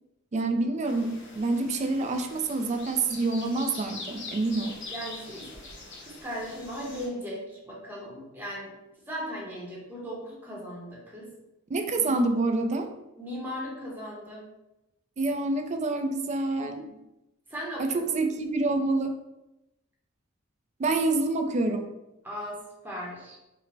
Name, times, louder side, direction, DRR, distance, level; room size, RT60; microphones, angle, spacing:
voice 1, 0.3-4.8 11.7-12.9 15.2-16.8 17.8-19.1 20.8-21.9, right 2 dB, 35° right, 6 dB, 0.3 m, -27 dB
sound 1, 0.8-7.1, left 2 dB, 60° left, 1.0 m, -43 dB
voice 2, 4.9-5.6 6.0-8.7 9.1-11.3 11.9-12.3 13.2-14.4 16.6-17.0 17.5-18.0 22.2-22.6 22.8-23.4, equal, 10° right, -4 dB, 0.8 m, -37 dB
4.9 x 2.0 x 3.3 m, 0.94 s
head